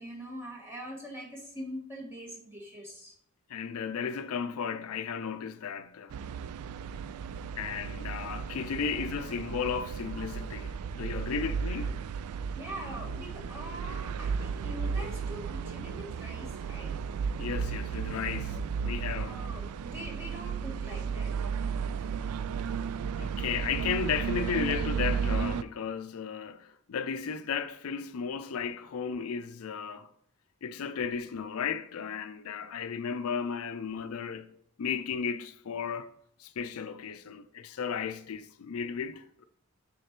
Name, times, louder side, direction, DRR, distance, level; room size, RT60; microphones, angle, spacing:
voice 1, 0.0-3.2 12.5-17.0 19.1-21.3 21.9-22.0, equal, 10° right, 1.4 m, -43 dB
voice 2, 3.5-6.2 7.6-12.0 17.4-19.4 23.2-30.1 30.6-34.5 34.8-36.1 36.4-39.5, left 6 dB, 80° left, 0.4 m, -34 dB
sound 1, 6.1-25.6, right 6 dB, 85° right, 0.3 m, -34 dB
6.5 x 4.0 x 4.4 m
head